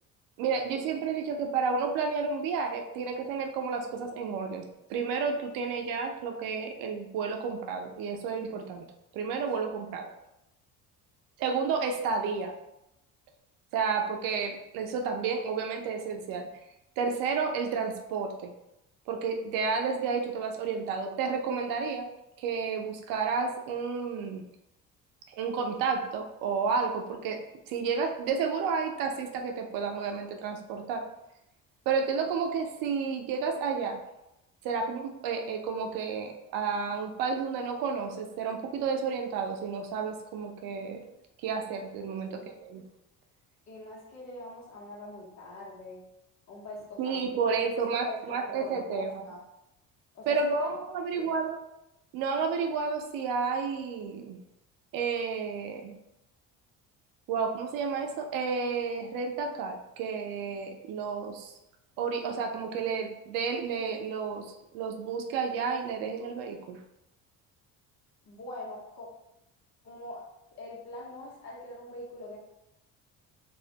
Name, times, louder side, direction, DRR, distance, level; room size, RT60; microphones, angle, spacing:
voice 1, 0.4-4.6 4.9-8.9 9.1-10.1 11.4-12.5 13.7-16.5 17.0-18.5 19.1-22.0 22.4-24.4 25.4-27.4 27.7-31.0 31.9-34.0 34.6-41.0 41.4-42.8 47.0-49.2 50.3-51.6 52.1-54.4 54.9-55.9 57.3-61.5 62.0-64.5 64.7-66.8, right 5 dB, 90° right, 4 dB, 0.5 m, -31 dB
voice 2, 43.7-46.0 46.5-47.5 48.1-49.4 50.1-50.7 51.1-51.3 68.2-69.1 69.8-70.2 70.6-72.4, left 2 dB, 55° left, -3 dB, 0.9 m, -43 dB
2.4 x 2.0 x 2.8 m, 0.87 s
cardioid pair, 135°, 33 cm